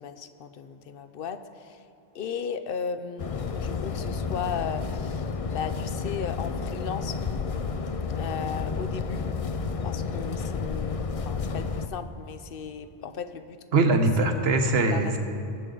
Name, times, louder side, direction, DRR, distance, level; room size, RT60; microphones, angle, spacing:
voice 1, 0.0-1.9 2.1-7.2 8.2-9.2 9.8-13.6 14.3-14.4 14.9-15.2, left 6 dB, 65° left, 11 dB, 0.8 m, -36 dB
sound 1, 3.2-11.9, left 5 dB, 45° left, 0.5 m, -31 dB
voice 2, 13.7-15.2, right 2 dB, 75° right, 5 dB, 1.3 m, -22 dB
21.5 x 8.1 x 3.9 m, 2.8 s
omnidirectional pair, 1.1 m